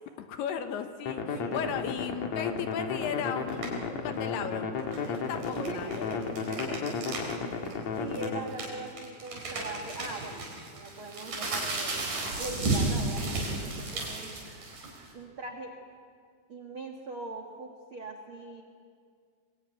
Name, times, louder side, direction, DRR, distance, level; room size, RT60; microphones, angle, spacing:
voice 1, 0.2-4.7 5.0-6.2, left 8 dB, 70° left, 7 dB, 2.8 m, -36 dB
sound 1, 1.1-8.4, left 5 dB, 50° left, 2.4 m, -33 dB
voice 2, 1.3-1.7 5.6-7.1 7.4-12.1 12.4-14.5 15.1-15.8 16.5-18.6, right 3 dB, 70° right, 2 dB, 1.2 m, -41 dB
sound 2, 3.5-3.8 4.8-7.3 7.6-7.7 8.1-15.1, right 2 dB, 45° right, 5.7 m, -33 dB
25.0 x 22.5 x 9.4 m, 2.2 s
omnidirectional pair, 5.4 m